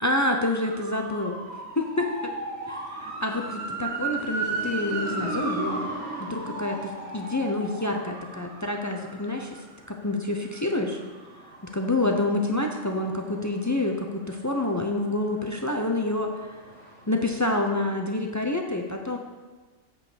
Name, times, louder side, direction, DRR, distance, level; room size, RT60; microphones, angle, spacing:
voice 1, 0.0-1.4 1.8-2.3 2.7-5.8 6.2-9.5 9.9-11.0 11.6-16.3 17.1-19.2, left 2 dB, 25° left, 3 dB, 0.4 m, -27 dB
sound 1, 0.5-14.3 14.7-17.2 17.5-17.6, right 2 dB, 10° right, 2.8 m, -36 dB
8.4 x 5.1 x 6.2 m, 1.3 s
omnidirectional pair, 1.3 m